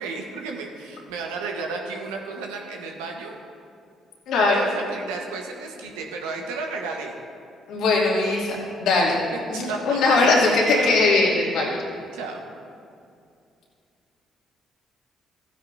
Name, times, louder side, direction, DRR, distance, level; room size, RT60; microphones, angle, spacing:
voice 1, 0.0-3.3 4.3-7.1 8.1-8.4 9.3-11.0 12.1-12.4, right 4 dB, 80° right, 1 dB, 1.3 m, -33 dB
voice 2, 4.3-4.6 7.7-9.1 9.5-11.8, left 3 dB, 70° left, -5 dB, 2.8 m, -20 dB
16.0 x 9.9 x 2.7 m, 2.4 s
hypercardioid pair, 50°, 0 cm